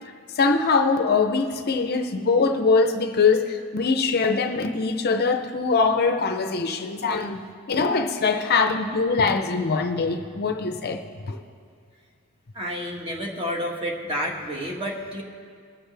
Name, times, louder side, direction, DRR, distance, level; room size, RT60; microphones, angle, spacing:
voice 1, 0.3-7.4 7.7-11.4, left 4 dB, 50° left, 6 dB, 0.6 m, -22 dB
voice 2, 12.5-15.2, equal, 25° right, -1 dB, 1.6 m, -30 dB
21.5 x 7.4 x 3.4 m, 2.2 s
head